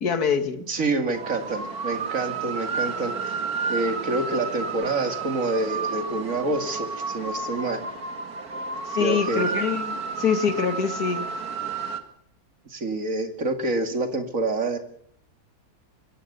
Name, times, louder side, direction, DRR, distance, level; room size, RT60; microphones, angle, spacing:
voice 1, 0.0-0.6 8.9-11.3, left 6 dB, 80° left, 10 dB, 2.2 m, -25 dB
voice 2, 0.7-3.4 3.7-7.8 9.0-9.6 12.7-14.8, right 2 dB, 60° right, 7 dB, 2.6 m, -27 dB
sound 1, 1.1-12.0, right 5 dB, 75° right, 2.4 m, -31 dB
23.0 x 17.0 x 6.8 m, 0.64 s
omnidirectional pair, 1.6 m